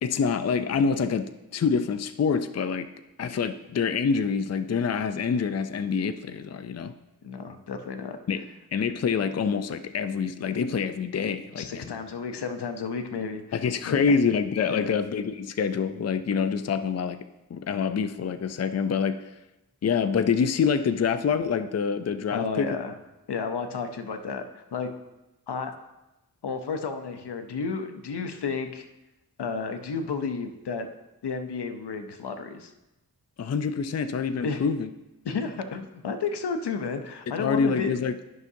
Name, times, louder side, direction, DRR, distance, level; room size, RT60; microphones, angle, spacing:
voice 1, 0.0-2.9 3.2-6.9 8.3-8.5 8.7-12.0 13.5-17.2 17.5-19.3 19.8-22.8 33.4-34.9 37.4-38.1, left 6 dB, 40° left, 11 dB, 0.5 m, -26 dB
voice 2, 7.2-8.2 11.6-14.0 14.7-14.9 22.3-22.9 23.3-24.9 25.5-25.7 26.4-28.8 29.4-30.9 31.2-32.7 34.4-34.7 35.2-38.0, left 5 dB, 85° left, 7 dB, 0.7 m, -32 dB
12.5 x 5.8 x 2.7 m, 0.99 s
cardioid pair, 50°, 39 cm